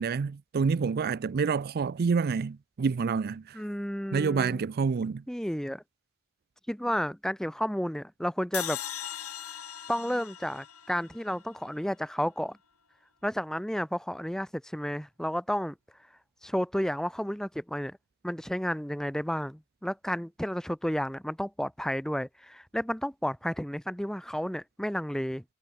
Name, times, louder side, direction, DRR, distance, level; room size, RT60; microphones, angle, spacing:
voice 1, 0.0-3.6 4.1-5.2, right 5 dB, 45° right, 0.4 m, -28 dB
voice 2, 3.5-4.6 5.3-5.8 6.7-8.8 9.9-12.6 13.2-15.7 16.4-18.0 18.2-25.4, equal, ahead, 1.1 m, -32 dB
sound 1, 8.5-11.8, left 11 dB, 85° left, 6.9 m, -39 dB
head